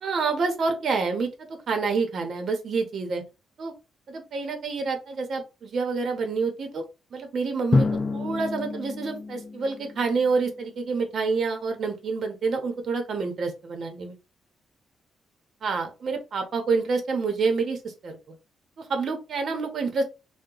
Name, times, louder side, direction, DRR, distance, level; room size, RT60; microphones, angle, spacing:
voice 1, 0.0-3.2 3.6-3.7 4.1-6.8 7.1-7.9 8.1-14.2 15.6-18.4 18.8-20.0, right 4 dB, 50° right, 5 dB, 0.7 m, -28 dB
Drum, 7.7-10.4, left 3 dB, 25° left, 0.4 m, -27 dB
2.8 x 2.1 x 3.7 m, 0.28 s
cardioid pair, 150°, 0 cm